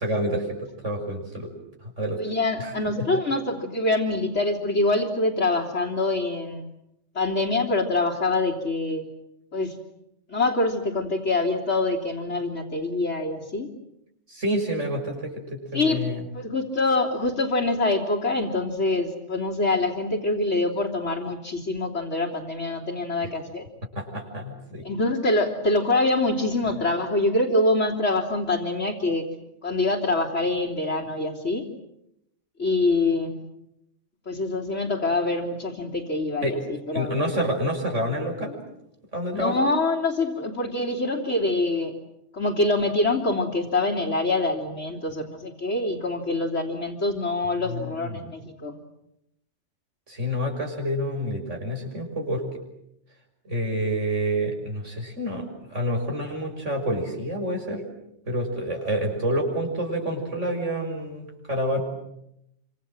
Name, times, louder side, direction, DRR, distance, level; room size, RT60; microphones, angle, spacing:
voice 1, 0.0-1.5 1.8-2.2 2.6-2.7 14.3-16.2 23.9-24.8 36.4-36.6 36.9-38.6 39.1-39.7 47.7-48.2 50.1-52.4 53.4-57.8 58.3-61.8, equal, 85° right, 2 dB, 6.7 m, -28 dB
voice 2, 2.2-6.6 7.2-9.1 9.5-9.8 10.3-13.7 15.7-16.0 16.3-23.7 24.8-29.3 29.6-31.7 32.6-33.4 34.3-37.2 39.3-41.9 42.3-48.8, left 2 dB, 75° left, -5 dB, 3.5 m, -25 dB
28.0 x 26.5 x 7.8 m, 0.81 s
omnidirectional pair, 1.2 m